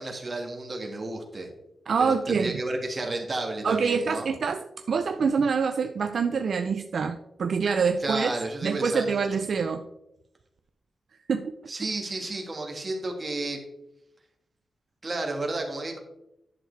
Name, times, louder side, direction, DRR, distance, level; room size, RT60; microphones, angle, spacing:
voice 1, 0.0-1.5 2.0-4.3 8.0-9.1 11.7-13.6 15.0-16.0, right 2 dB, 25° right, 1 dB, 1.7 m, -32 dB
voice 2, 1.9-2.6 3.6-8.3 8.6-9.8 11.3-11.5, right 5 dB, 60° right, 7 dB, 0.4 m, -26 dB
10.5 x 6.6 x 3.3 m, 0.87 s
wide cardioid pair, 145°, 0 cm